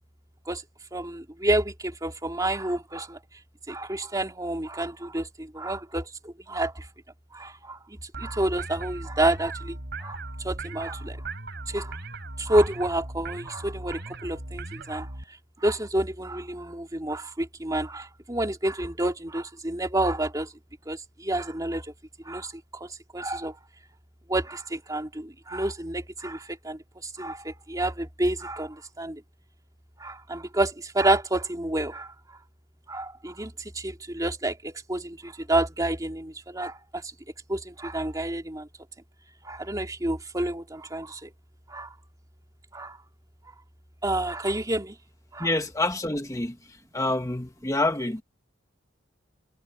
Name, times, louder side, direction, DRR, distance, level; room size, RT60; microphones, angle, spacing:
voice 1, 0.9-3.2 3.7-6.8 7.3-10.2 10.4-11.2 11.7-12.0 12.4-15.1 15.6-20.5 20.9-21.9 22.2-22.5 22.8-22.9 23.1-23.6 24.3-29.2 30.0-32.1 32.9-37.0 37.5-38.7 39.4-41.3 41.7-41.9 42.7-43.0 44.0-44.9 45.3-45.5, right 1 dB, 20° right, 3.0 m, -29 dB
sound 1, 8.1-15.2, right 2 dB, 60° right, 4.0 m, -38 dB
voice 2, 45.4-46.5 46.9-48.2, left 2 dB, 15° left, 1.3 m, -27 dB
head